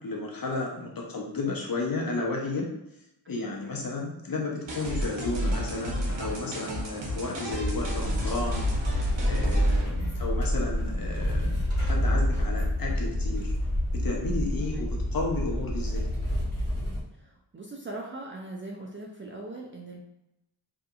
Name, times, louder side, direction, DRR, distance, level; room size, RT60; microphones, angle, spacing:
voice 1, 0.0-2.7 3.3-13.5 13.9-16.0, left 3 dB, 45° left, -1 dB, 0.7 m, -33 dB
sound 1, 4.7-9.9, equal, 65° right, 0.8 m, -30 dB
sound 2, 7.6-17.0, equal, 30° left, 1.1 m, -28 dB
voice 2, 17.2-20.0, right 2 dB, 25° right, -2 dB, 0.4 m, -40 dB
2.8 x 2.4 x 2.3 m, 0.86 s
wide cardioid pair, 70°, 48 cm